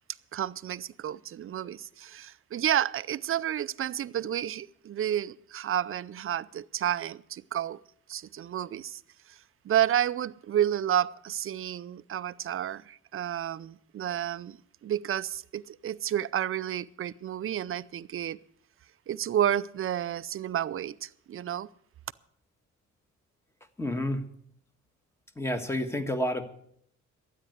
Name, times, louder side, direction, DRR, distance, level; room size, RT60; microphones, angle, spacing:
voice 1, 0.3-7.8 8.1-9.0 9.3-9.4 9.6-18.4 19.1-21.7, right 11 dB, 45° right, 0.5 m, -31 dB
voice 2, 23.8-24.2 25.4-26.4, left 1 dB, 10° left, 1.5 m, -29 dB
12.5 x 9.5 x 7.9 m
cardioid pair, 90°, 30 cm